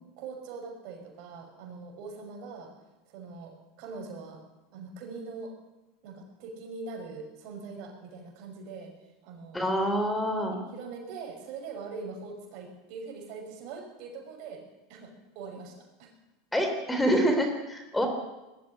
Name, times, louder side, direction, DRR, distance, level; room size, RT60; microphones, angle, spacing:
voice 1, 0.0-2.7 3.1-4.4 4.7-5.5 6.0-9.0 9.2-9.6 10.7-14.6 14.9-16.1, right 4 dB, 60° right, 3 dB, 6.0 m, -42 dB
voice 2, 9.5-10.6 16.5-18.1, equal, 10° left, 5 dB, 3.6 m, -26 dB
20.0 x 13.5 x 9.8 m, 1.1 s
supercardioid pair, 120°, 0 cm